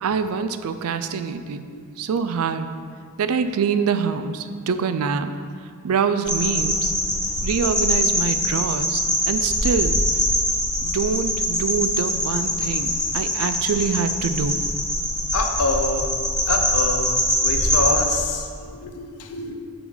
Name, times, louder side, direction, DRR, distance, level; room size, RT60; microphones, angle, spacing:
voice 1, 0.0-1.7 2.0-2.7 3.2-5.3 5.8-6.9 7.4-9.0 9.3-10.0 10.8-14.6, right 6 dB, 70° right, 10 dB, 0.4 m, -25 dB
sound 1, 6.3-18.2, equal, 5° left, 1.3 m, -23 dB
voice 2, 15.3-16.1 16.5-17.1 17.4-18.4 18.8-19.6, left 3 dB, 90° left, 4 dB, 0.7 m, -25 dB
7.0 x 3.7 x 4.7 m, 2.1 s
head